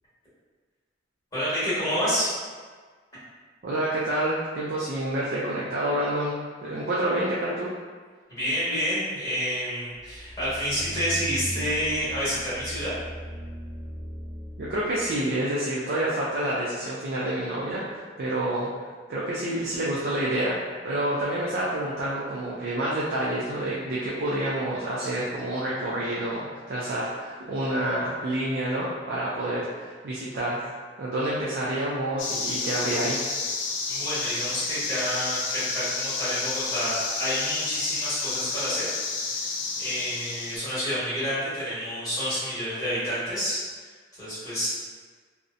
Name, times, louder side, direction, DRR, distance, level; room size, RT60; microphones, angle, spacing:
voice 1, 1.3-2.3 8.3-12.9 33.9-43.6 44.2-44.7, equal, 20° left, -13 dB, 1.1 m, -29 dB
voice 2, 3.6-7.7 14.6-18.7 19.1-20.6 20.8-30.6 31.0-33.2, right 1 dB, 50° right, -6 dB, 0.3 m, -28 dB
sound 1, 10.0-15.0, equal, 10° right, 0.6 m, -38 dB
sound 2, 32.2-40.6, left 4 dB, 80° left, 0.4 m, -30 dB
2.6 x 2.0 x 2.4 m, 1.5 s
head